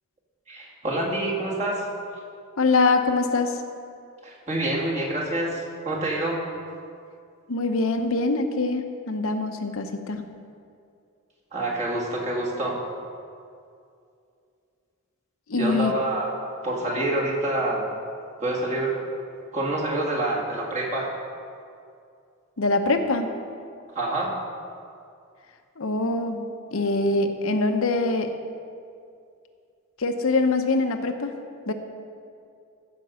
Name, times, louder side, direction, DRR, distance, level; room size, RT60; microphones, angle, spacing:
voice 1, 0.5-1.8 4.2-6.4 11.5-12.8 15.6-16.3 16.6-17.9 18.4-19.0 19.5-21.1 24.0-24.4, right 1 dB, 30° right, -3 dB, 2.0 m, -27 dB
voice 2, 2.6-3.6 7.5-10.3 15.5-15.9 22.6-23.3 25.8-28.3 30.0-31.4 31.7-31.8, left 3 dB, 70° left, 6 dB, 0.8 m, -24 dB
14.5 x 5.3 x 6.9 m, 2.4 s
head